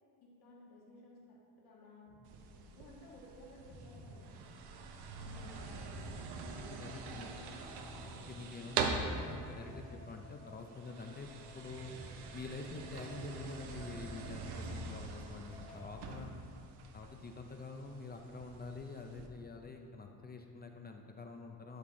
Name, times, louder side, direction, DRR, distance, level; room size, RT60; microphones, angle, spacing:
voice 1, 0.2-4.5 5.2-6.9 8.0-8.3 15.1-15.4, left 1 dB, 65° left, -4 dB, 2.2 m, -57 dB
sound 1, 2.1-2.5 3.5-16.0, left 1 dB, 40° left, 1.6 m, -55 dB
sound 2, 2.3-19.3, right 4 dB, 70° right, 0.9 m, -44 dB
voice 2, 6.6-7.3 8.2-11.9 12.3-16.3 16.9-21.8, left 3 dB, 25° left, 3 dB, 0.5 m, -47 dB
11.5 x 5.8 x 3.8 m, 2.5 s
cardioid pair, 120°, 40 cm